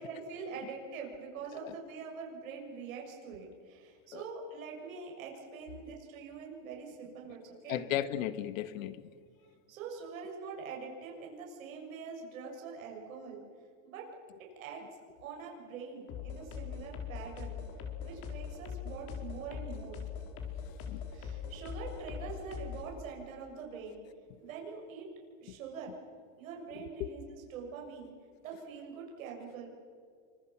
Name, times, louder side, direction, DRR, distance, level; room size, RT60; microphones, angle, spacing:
voice 1, 0.0-7.9 9.7-13.4 13.8-14.1 14.6-14.9 15.2-17.6 18.0-20.0 21.1-24.0 24.4-25.1 25.4-26.0 26.4-28.1 28.4-29.7, right 5 dB, 85° right, 0 dB, 7.1 m, -44 dB
voice 2, 7.7-9.0 20.8-21.0 26.8-27.1, left 12 dB, 80° left, 12 dB, 1.8 m, -35 dB
sound 1, 16.1-22.9, left 7 dB, 35° left, 4.2 m, -41 dB
29.0 x 25.5 x 6.1 m, 2.1 s
supercardioid pair, 165°, 40 cm